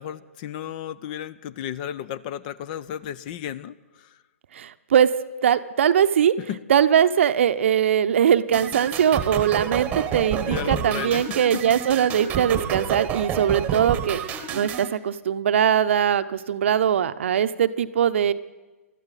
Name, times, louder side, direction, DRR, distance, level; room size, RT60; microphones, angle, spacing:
voice 1, 0.0-4.2 6.4-6.6 10.5-11.6, left 10 dB, 35° left, 19 dB, 0.6 m, -34 dB
voice 2, 4.5-5.1 5.4-6.3 6.7-14.2 14.5-18.3, right 9 dB, 55° right, 12 dB, 0.7 m, -21 dB
sound 1, 8.5-14.9, right 8 dB, 15° right, 1.1 m, -29 dB
23.5 x 13.5 x 4.1 m, 1.2 s
figure-of-eight pair, 130°, 8 cm